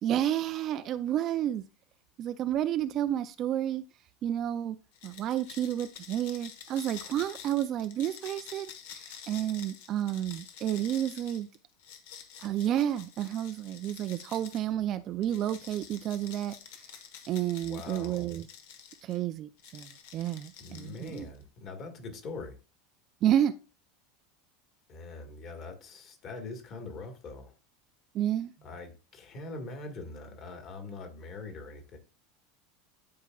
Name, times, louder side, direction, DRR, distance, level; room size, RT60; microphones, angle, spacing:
voice 1, 0.0-1.7 2.2-3.8 4.2-4.8 5.0-11.5 12.4-16.6 17.3-18.5 19.0-21.3 23.2-23.5 28.1-28.5, right 11 dB, 35° right, 0.3 m, -30 dB
sound 1, 4.9-14.7 15.2-19.2 19.6-21.4, left 8 dB, 70° left, 1.3 m, -49 dB
voice 2, 17.6-18.3 20.6-22.6 24.9-27.5 28.6-32.0, left 3 dB, 35° left, 1.6 m, -43 dB
11.0 x 4.8 x 2.3 m
supercardioid pair, 165°, 0 cm